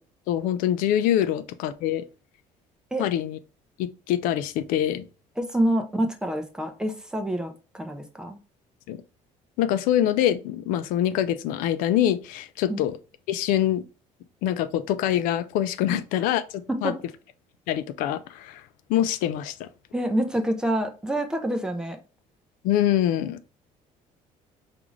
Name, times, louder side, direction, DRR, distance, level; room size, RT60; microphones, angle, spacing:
voice 1, 0.3-2.0 3.0-3.4 3.8-5.1 8.9-9.0 9.6-13.0 13.3-13.8 14.4-16.9 17.7-18.6 18.9-19.7 22.6-23.4, left 11 dB, 90° left, 0.4 m, -24 dB
voice 2, 5.4-8.4 12.7-12.8 16.7-17.0 19.9-22.0, right 1 dB, 5° right, 0.4 m, -27 dB
5.0 x 2.5 x 3.1 m
cardioid pair, 175°, 14 cm